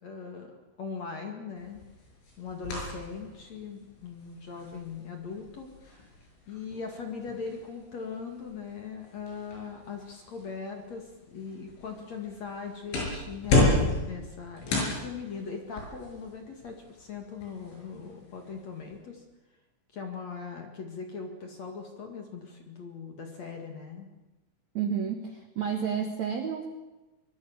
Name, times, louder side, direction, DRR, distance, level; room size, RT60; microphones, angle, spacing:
voice 1, 0.0-1.8 2.4-6.1 6.5-19.2 19.9-24.1, left 5 dB, 45° left, 3 dB, 2.4 m, -40 dB
sound 1, 1.6-19.0, left 2 dB, 70° left, 8.9 m, -34 dB
voice 2, 24.7-26.7, right 7 dB, 80° right, 5 dB, 1.6 m, -30 dB
24.0 x 22.0 x 7.3 m, 1.1 s
omnidirectional pair, 5.7 m